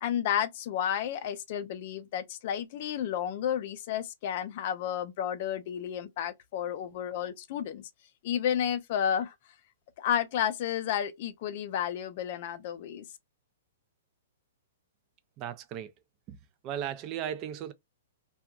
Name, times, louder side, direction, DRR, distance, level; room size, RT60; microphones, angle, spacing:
voice 1, 0.0-7.9 8.2-9.3 10.0-13.1, left 9 dB, 40° left, 0.4 m, -31 dB
voice 2, 15.4-15.9 16.3-16.4 16.6-17.7, right 10 dB, 25° right, 0.4 m, -36 dB
2.8 x 2.3 x 2.4 m
hypercardioid pair, 165°, 0 cm